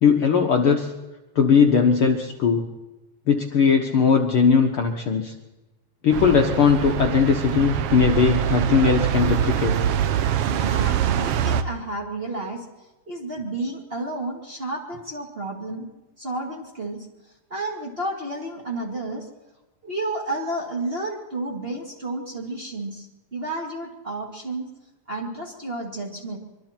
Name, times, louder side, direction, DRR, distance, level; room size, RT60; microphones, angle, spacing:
voice 1, 0.0-0.9 1.4-2.7 3.3-5.3 6.0-9.8, left 6 dB, 55° left, 3 dB, 1.7 m, -19 dB
sound 1, 6.1-11.6, right 10 dB, 70° right, 1.4 m, -24 dB
voice 2, 10.4-12.7 13.1-15.9 16.2-17.1 17.5-19.3 19.8-24.7 25.1-26.4, right 2 dB, 20° right, -1 dB, 2.2 m, -31 dB
24.5 x 24.0 x 4.5 m, 1.1 s
omnidirectional pair, 3.6 m